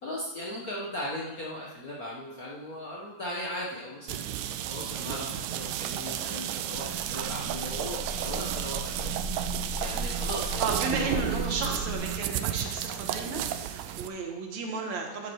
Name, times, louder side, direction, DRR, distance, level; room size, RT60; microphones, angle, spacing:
voice 1, 0.0-4.4 4.7-8.9 9.8-11.2, left 1 dB, 90° left, -4 dB, 0.7 m, -37 dB
sound 1, 4.1-14.1, right 11 dB, 85° right, 2.3 m, -33 dB
sound 2, 6.7-11.9, right 1 dB, 25° right, 2.8 m, -38 dB
voice 2, 10.6-15.3, right 4 dB, 60° right, 2 dB, 2.4 m, -33 dB
13.0 x 7.8 x 4.7 m, 1.2 s
omnidirectional pair, 3.8 m